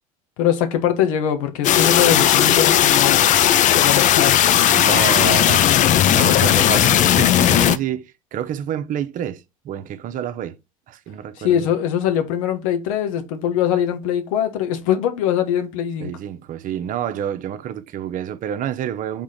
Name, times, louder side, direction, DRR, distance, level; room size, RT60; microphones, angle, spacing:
voice 1, 0.4-3.2 3.7-4.4 11.4-16.1, left 10 dB, 75° left, 1.2 m, -22 dB
sound 1, 1.6-7.8, left 11 dB, 45° left, 0.5 m, -16 dB
voice 2, 4.7-5.7 6.0-10.6 10.9-11.7 16.0-19.2, right 10 dB, 50° right, 0.8 m, -28 dB
4.9 x 3.7 x 5.6 m
hypercardioid pair, 70°, 18 cm